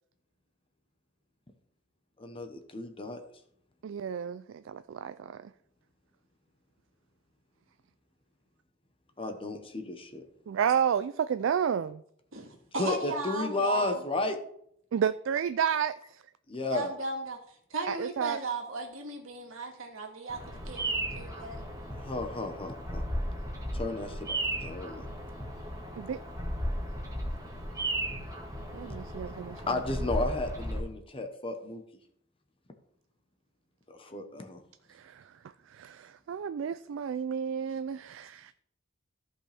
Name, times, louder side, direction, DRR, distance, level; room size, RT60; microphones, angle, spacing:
voice 1, 2.2-3.2 9.2-10.2 12.8-14.4 16.5-16.9 22.0-23.0 23.7-24.4 24.6-25.1 29.7-31.8 33.9-34.6, left 2 dB, 25° left, 1.0 m, -33 dB
voice 2, 3.8-5.4 10.5-12.0 14.9-16.2 17.9-18.4 26.0-26.2 28.7-29.8 34.9-35.3 35.7-38.5, right 8 dB, 70° right, 0.3 m, -31 dB
voice 3, 12.3-14.0 16.7-21.6, right 3 dB, 85° right, 2.0 m, -36 dB
Bird vocalization bird call bird song, 20.3-30.8, right 1 dB, 15° right, 1.7 m, -35 dB
14.5 x 5.4 x 3.4 m
head